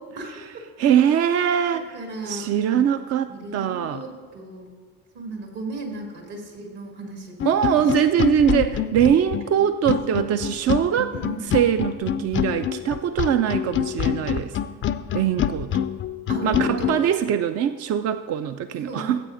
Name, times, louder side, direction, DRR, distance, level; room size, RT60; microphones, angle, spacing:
voice 1, 0.8-2.0 2.3-4.0 7.4-11.1 11.4-14.5 15.1-15.9 16.4-19.2, right 9 dB, 40° right, 10 dB, 0.4 m, -22 dB
voice 2, 1.7-2.9 3.3-4.7 5.1-7.5 10.1-10.2 11.1-11.4 16.3-17.2 18.8-19.2, right 1 dB, 60° right, 0 dB, 2.5 m, -35 dB
sound 1, 7.4-17.0, left 9 dB, 30° left, 0.4 m, -26 dB
16.5 x 8.3 x 2.6 m, 1.5 s
hypercardioid pair, 60°, 43 cm